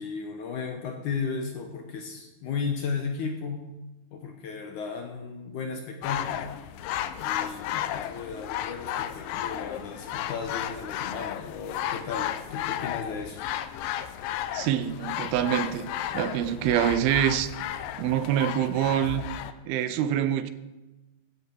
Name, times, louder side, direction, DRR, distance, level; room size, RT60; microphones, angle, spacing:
voice 1, 0.0-3.7 4.1-6.5 7.2-13.4, left 5 dB, 70° left, 3 dB, 2.0 m, -35 dB
sound 1, 6.0-19.5, left 11 dB, 85° left, 2.0 m, -33 dB
voice 2, 14.5-15.9 16.1-17.5 18.0-19.3 19.7-20.5, right 11 dB, 80° right, 11 dB, 2.4 m, -25 dB
15.5 x 10.0 x 4.6 m, 1.1 s
omnidirectional pair, 4.5 m